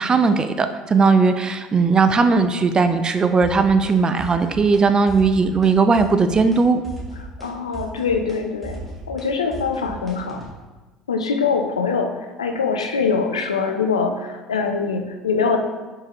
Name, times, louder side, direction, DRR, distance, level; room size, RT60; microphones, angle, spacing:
voice 1, 0.0-6.8, right 4 dB, 25° right, 9 dB, 0.3 m, -18 dB
sound 1, 3.4-3.9 4.2-4.8 5.1-5.7 6.0-6.6 6.8-10.5, right 1 dB, 5° left, 1.3 m, -36 dB
voice 2, 7.4-10.4 11.1-12.1 12.4-15.6, left 5 dB, 85° left, 4 dB, 0.4 m, -23 dB
4.4 x 3.6 x 2.9 m, 1.2 s
hypercardioid pair, 65°, 3 cm